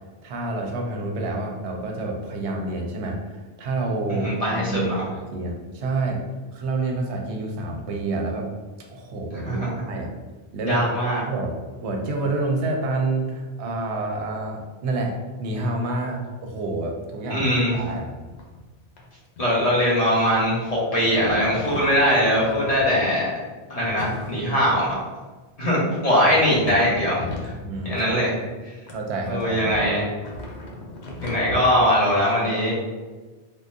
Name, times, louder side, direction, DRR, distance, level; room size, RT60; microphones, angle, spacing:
voice 1, 0.2-6.2 6.5-8.5 8.9-10.1 10.5-11.5 11.8-18.1 25.8-26.2 27.6-28.3 28.9-29.8, right 2 dB, 90° right, 2 dB, 0.9 m, -28 dB
voice 2, 4.1-5.0 9.4-9.7 10.6-11.2 17.3-17.7 19.4-23.3 23.7-24.9 25.6-27.5 27.8-28.3 29.3-30.0 31.2-32.7, equal, 40° left, -7 dB, 0.8 m, -21 dB
sound 1, 17.7-18.7 18.9-19.1 19.4-20.4 21.0-23.4 24.0-24.8 25.5-25.6 26.4-28.4 28.9-31.7, left 2 dB, 80° left, 0.9 m, -37 dB
3.7 x 2.0 x 2.5 m, 1.3 s
omnidirectional pair, 1.1 m